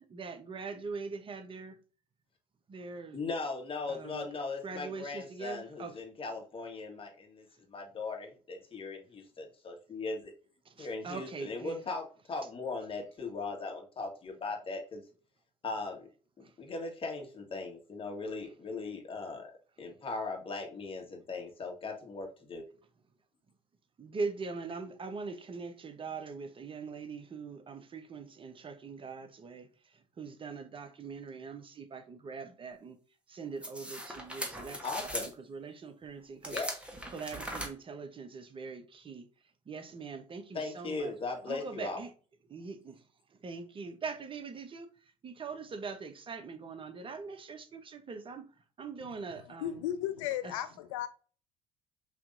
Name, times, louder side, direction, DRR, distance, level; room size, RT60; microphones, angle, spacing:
voice 1, 0.0-1.8 2.7-3.2 3.9-4.3 4.6-6.0 10.6-11.8 16.4-16.5 24.0-33.0 33.3-36.6 37.1-39.3 39.7-41.1 41.5-42.1 42.5-43.0 43.3-48.5 48.8-49.8 50.4-50.6, right 4 dB, 30° right, 0.7 m, -42 dB
voice 2, 3.1-10.3 10.8-15.0 15.6-16.1 16.6-19.5 19.8-22.6 34.8-35.3 36.4-36.7 40.5-42.0, left 3 dB, 35° left, 1.6 m, -38 dB
sound 1, 33.6-35.3 36.4-37.7, right 1 dB, 5° right, 1.4 m, -39 dB
voice 3, 49.6-51.1, left 12 dB, 75° left, 0.4 m, -35 dB
5.8 x 2.9 x 2.6 m
hypercardioid pair, 60°, 16 cm